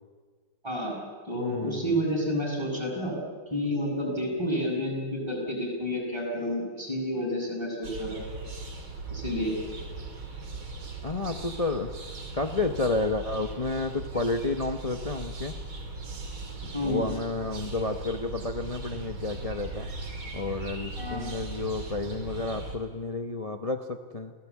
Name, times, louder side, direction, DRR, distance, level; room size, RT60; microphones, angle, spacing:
voice 1, 0.6-1.0 1.3-3.1 3.5-8.3 9.1-9.5 16.7-17.0 21.0-21.3, equal, 10° right, -3 dB, 7.1 m, -30 dB
voice 2, 1.3-2.0 11.0-11.9 12.3-15.5 16.8-19.9 20.3-24.3, left 3 dB, 50° left, 7 dB, 0.4 m, -31 dB
sound 1, 7.8-22.8, right 3 dB, 80° right, 3.8 m, -39 dB
27.5 x 17.5 x 8.5 m, 1.5 s
omnidirectional pair, 2.2 m